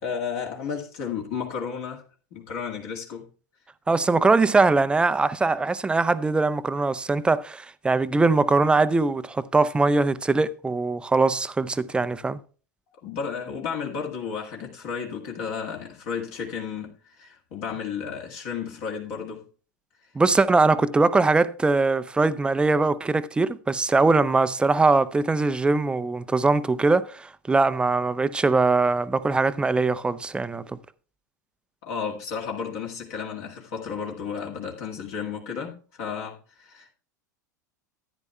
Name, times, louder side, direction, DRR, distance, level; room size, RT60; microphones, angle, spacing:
voice 1, 0.0-2.0 2.3-3.3 13.0-19.4 31.8-36.9, left 6 dB, 50° left, 1.7 m, -33 dB
voice 2, 3.9-12.4 20.2-30.6, right 3 dB, 10° right, 0.4 m, -21 dB
14.0 x 9.7 x 2.2 m
figure-of-eight pair, 85°, 10 cm